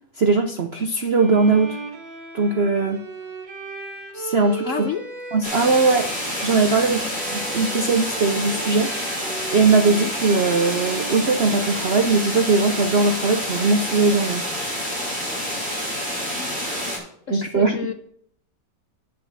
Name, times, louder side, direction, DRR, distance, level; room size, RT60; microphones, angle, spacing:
voice 1, 0.2-1.8 2.3-3.0 4.1-4.7 5.3-6.1 6.4-8.9 9.5-14.5 17.3-17.8, right 3 dB, 60° right, 5 dB, 0.6 m, -20 dB
Bowed string instrument, 1.1-12.1, right 3 dB, 90° right, 2.2 m, -36 dB
voice 2, 4.6-5.0 6.8-7.1 16.3-17.0 17.3-17.9, left 7 dB, 60° left, 8 dB, 0.8 m, -31 dB
sound 1, 5.4-17.0, equal, 5° right, 4.6 m, -28 dB
9.0 x 6.7 x 7.0 m, 0.67 s
omnidirectional pair, 1.9 m